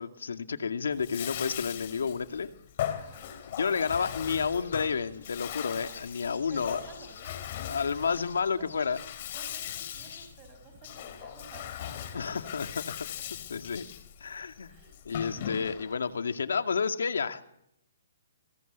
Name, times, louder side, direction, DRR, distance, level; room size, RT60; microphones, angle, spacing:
voice 1, 0.0-2.5 3.5-6.8 7.7-9.0 12.1-12.9 13.5-13.9 14.2-14.7 15.0-17.4, left 6 dB, 85° left, 2.3 m, -30 dB
Bathtub (filling or washing), 0.9-16.1, left 10 dB, 40° left, 3.6 m, -39 dB
voice 2, 3.0-3.3 6.3-8.1 8.5-9.1 9.3-12.7 14.7-15.0, right 6 dB, 25° right, 5.4 m, -53 dB
sound 1, 4.2-10.3, left 6 dB, 70° left, 5.4 m, -51 dB
30.0 x 24.0 x 8.3 m
hypercardioid pair, 165°, 0 cm